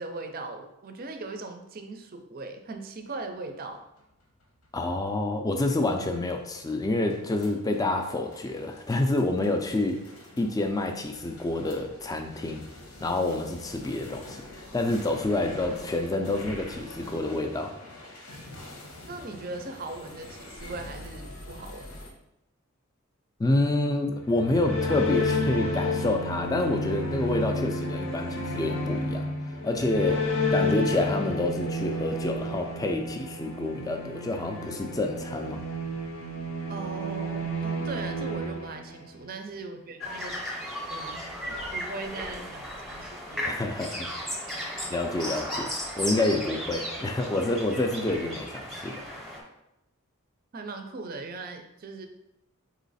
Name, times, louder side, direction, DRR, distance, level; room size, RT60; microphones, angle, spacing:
voice 1, 0.0-3.8 19.1-21.9 36.7-40.4 40.9-43.6 50.5-52.1, right 3 dB, 40° right, 6 dB, 0.4 m, -39 dB
sound 1, 3.5-22.1, left 1 dB, 85° left, 1.0 m, -46 dB
voice 2, 4.7-10.0 10.4-12.7 13.0-17.7 23.4-29.3 29.6-30.2 30.5-35.6 43.4-44.1 44.9-45.7 46.0-49.0, left 2 dB, 15° left, 5 dB, 0.4 m, -28 dB
sound 2, 24.1-39.4, left 1 dB, 65° left, 0.6 m, -31 dB
sound 3, 40.0-49.4, equal, ahead, 0.7 m, -35 dB
4.0 x 3.1 x 4.0 m, 0.89 s
head